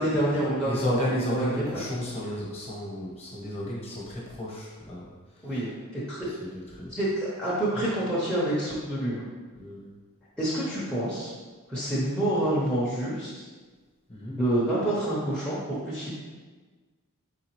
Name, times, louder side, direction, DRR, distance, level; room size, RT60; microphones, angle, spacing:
voice 1, 0.0-1.8 5.4-6.3 6.9-9.2 10.4-11.3 11.7-13.3 14.3-16.1, right 1 dB, 5° left, -9 dB, 0.7 m, -27 dB
voice 2, 0.6-5.1 5.5-5.6 6.5-6.9 9.5-9.9 14.1-14.4, left 1 dB, 30° left, -5 dB, 1.0 m, -33 dB
3.8 x 3.8 x 3.0 m, 1.4 s
head